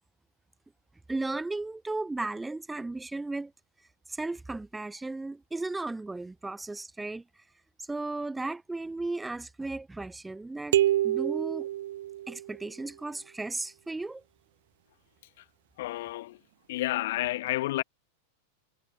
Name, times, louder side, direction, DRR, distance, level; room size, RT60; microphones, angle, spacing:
voice 1, 1.1-3.5 4.1-7.4 7.8-10.8 11.0-11.7 12.3-14.2, right 2 dB, 10° right, 0.8 m, -35 dB
sound 1, 10.7-12.6, right 13 dB, 60° right, 1.3 m, -27 dB
voice 2, 15.8-16.4 16.7-17.8, left 17 dB, 55° left, 1.3 m, -30 dB
figure-of-eight pair, 90°, 0 cm